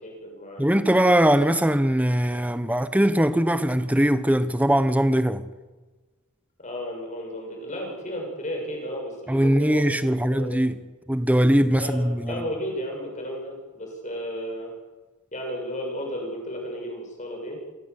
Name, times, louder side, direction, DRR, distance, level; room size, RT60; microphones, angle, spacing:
voice 1, 0.0-0.6 6.6-10.6 11.8-14.7 15.3-17.6, equal, 35° left, 7.1 m, -33 dB
voice 2, 0.6-5.4 9.3-10.8 11.1-12.4, equal, 5° right, 1.1 m, -21 dB
28.0 x 18.0 x 8.4 m
head